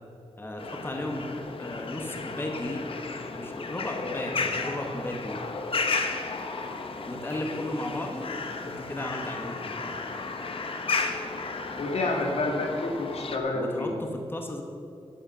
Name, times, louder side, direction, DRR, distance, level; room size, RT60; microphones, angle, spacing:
voice 1, 0.4-1.3 1.6-2.9 3.3-5.4 7.0-8.2 8.6-9.9 13.5-14.6, left 1 dB, 20° left, 2 dB, 1.5 m, -35 dB
sound 1, 0.6-13.4, left 4 dB, 60° left, 1.1 m, -33 dB
voice 2, 11.8-13.9, left 2 dB, 90° left, 0 dB, 2.2 m, -28 dB
12.5 x 8.6 x 6.4 m, 2.8 s
wide cardioid pair, 105°, 10 cm